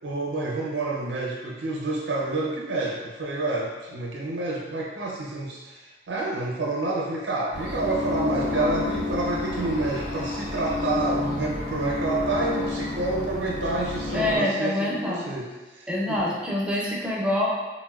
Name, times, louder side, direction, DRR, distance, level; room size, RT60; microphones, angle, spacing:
voice 1, 0.0-16.4, right 2 dB, 75° right, -3 dB, 0.4 m, -29 dB
sound 1, 7.5-14.4, left 2 dB, 80° left, 1.0 m, -30 dB
voice 2, 14.1-15.3 15.9-17.5, left 1 dB, 5° right, -5 dB, 0.4 m, -26 dB
4.0 x 2.0 x 2.2 m, 1.2 s
head